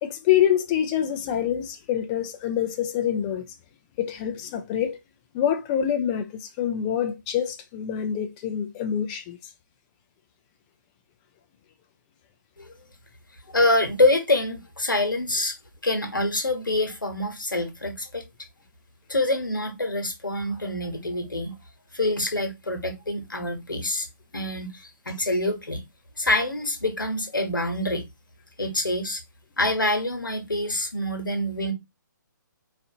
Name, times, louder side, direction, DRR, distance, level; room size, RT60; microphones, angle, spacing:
voice 1, 0.0-3.4 4.0-5.0 5.3-9.4, left 10 dB, 20° left, 0.4 m, -26 dB
voice 2, 13.5-15.6 15.8-18.2 19.1-21.5 21.9-24.1 24.3-25.8 26.2-28.0 28.6-29.2 29.6-31.7, left 2 dB, 90° left, 1.1 m, -26 dB
4.0 x 2.5 x 2.7 m
figure-of-eight pair, 140°, 11 cm